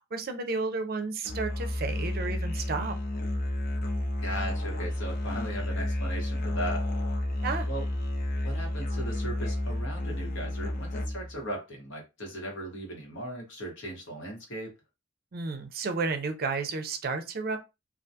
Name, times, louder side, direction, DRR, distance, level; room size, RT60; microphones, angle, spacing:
voice 1, 0.0-2.9 7.4-7.7 15.3-17.6, right 4 dB, 50° right, 0.4 m, -32 dB
Musical instrument, 1.2-11.4, left 1 dB, 50° left, 0.6 m, -31 dB
voice 2, 4.2-6.8 7.7-7.9 8.4-14.7, right 1 dB, 75° left, 1.2 m, -38 dB
2.4 x 2.2 x 2.7 m
head